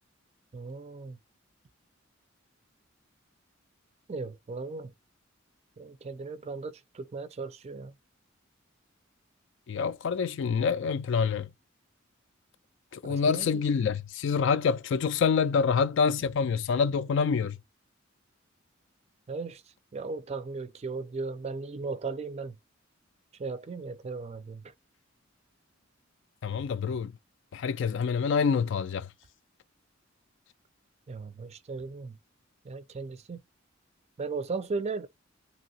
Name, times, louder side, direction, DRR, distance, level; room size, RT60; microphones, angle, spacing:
voice 1, 0.5-1.2 4.1-4.9 5.8-7.9 13.1-13.6 19.3-19.6 19.9-22.6 23.4-24.6 31.1-32.2 32.6-33.4 34.2-35.1, right 4 dB, 30° right, 0.4 m, -36 dB
voice 2, 9.7-11.5 12.9-17.6 26.4-27.1 27.5-29.1, left 6 dB, 65° left, 0.3 m, -26 dB
2.9 x 2.8 x 2.7 m
head